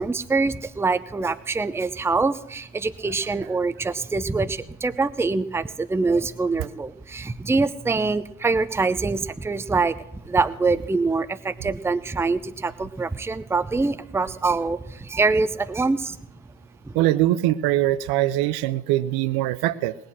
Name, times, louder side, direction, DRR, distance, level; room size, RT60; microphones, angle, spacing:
voice 1, 0.0-10.0 10.2-16.2 16.9-17.0, right 3 dB, 5° right, 12 dB, 0.6 m, -24 dB
voice 2, 16.9-19.9, right 15 dB, 60° right, 15 dB, 0.7 m, -22 dB
19.5 x 7.7 x 6.2 m, 0.86 s
figure-of-eight pair, 50°, 44 cm